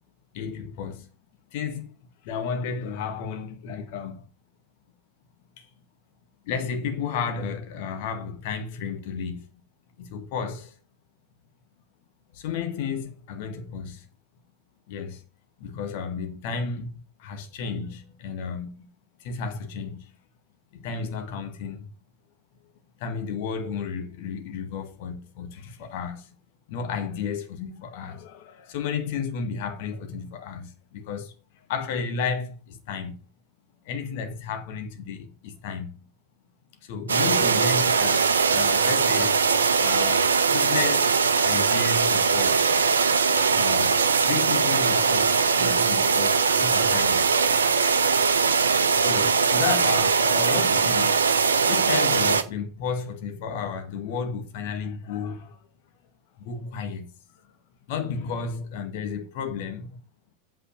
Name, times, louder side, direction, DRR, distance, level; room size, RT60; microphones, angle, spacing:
voice 1, 0.3-1.1 1.5-1.9 2.2-4.3 5.6-5.7 6.5-9.4 10.0-10.7 12.3-14.0 14.9-15.2 15.6-18.9 19.2-20.1 20.7-21.9 23.0-26.3 26.7-31.3 31.7-33.2 33.9-36.0 36.8-39.4 39.8-42.8 43.5-47.3 49.0-51.2 51.7-55.6 56.4-57.1 57.9-59.9, left 6 dB, 50° left, 1.8 m, -32 dB
sound 1, 37.1-52.4, right 5 dB, 70° right, 0.9 m, -21 dB
8.5 x 5.5 x 5.6 m
figure-of-eight pair, 90°, 0 cm